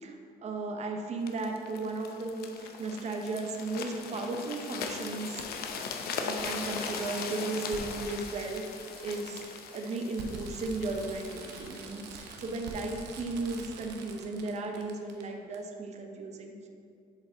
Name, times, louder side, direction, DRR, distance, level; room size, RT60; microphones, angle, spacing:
voice 1, 0.0-2.5 2.8-5.4 6.2-8.6 9.0-9.4 9.7-16.5, right 3 dB, 40° right, 3 dB, 0.7 m, -35 dB
sound 1, 1.3-13.1 13.7-13.9, left 5 dB, 65° left, 0.6 m, -40 dB
Fireworks, 2.1-2.2 3.7-3.8 5.4-5.5 6.0-6.1 6.3-15.2 15.5-15.6, right 4 dB, 85° right, 0.7 m, -46 dB
7.3 x 3.9 x 3.7 m, 2.4 s
cardioid pair, 110°, 17 cm